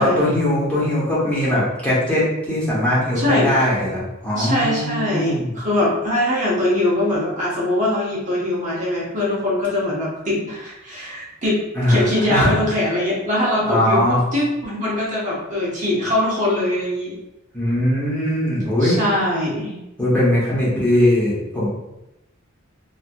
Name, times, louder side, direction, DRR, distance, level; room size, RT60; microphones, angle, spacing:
voice 1, 0.0-5.5 11.7-12.5 13.6-14.2 17.5-19.0 20.0-21.7, left 1 dB, 5° left, -9 dB, 1.0 m, -20 dB
voice 2, 3.1-3.6 4.3-11.6 11.9-17.1 18.8-19.8, left 1 dB, 35° right, -6 dB, 0.8 m, -22 dB
2.9 x 2.7 x 2.5 m, 0.93 s
head